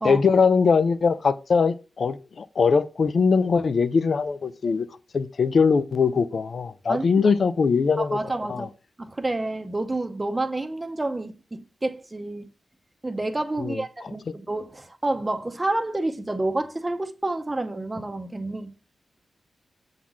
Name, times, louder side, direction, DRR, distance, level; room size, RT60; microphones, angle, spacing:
voice 1, 0.0-4.9 5.1-8.2 8.5-8.7 13.6-13.8, left 5 dB, 60° left, 0.6 m, -21 dB
voice 2, 6.9-7.3 8.0-8.7 9.0-12.5 13.0-18.7, right 2 dB, 20° right, 0.8 m, -29 dB
7.2 x 3.9 x 6.2 m
wide cardioid pair, 95°, 0 cm